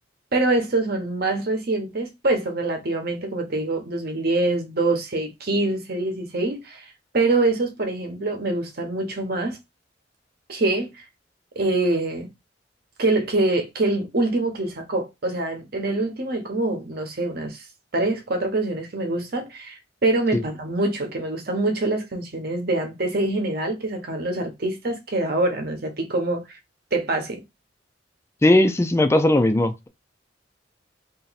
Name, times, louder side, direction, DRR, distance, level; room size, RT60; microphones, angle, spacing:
voice 1, 0.3-6.8 7.1-9.6 10.5-10.9 11.6-12.3 13.0-17.6 17.9-26.6 26.9-27.4, right 2 dB, 55° right, 1.0 m, -25 dB
voice 2, 28.4-29.9, left 1 dB, 15° left, 0.4 m, -18 dB
3.0 x 2.7 x 4.0 m
head